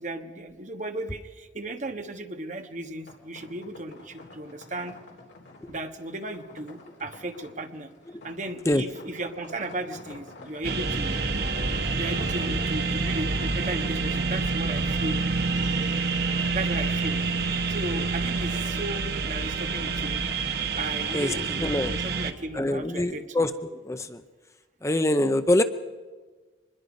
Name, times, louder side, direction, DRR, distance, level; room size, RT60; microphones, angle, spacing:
voice 1, 0.0-4.9 5.7-7.9 8.2-11.2 11.9-15.2 16.5-17.2 17.7-20.2 20.8-23.3, right 1 dB, 40° right, 6 dB, 1.4 m, -35 dB
sound 1, 3.0-21.3, left 2 dB, 70° left, 3.8 m, -48 dB
sound 2, 10.6-22.3, right 4 dB, 55° right, 1.2 m, -27 dB
voice 2, 21.6-21.9 22.5-24.2 24.8-25.6, left 1 dB, 15° left, 9 dB, 0.6 m, -24 dB
24.5 x 21.0 x 5.3 m, 1.4 s
head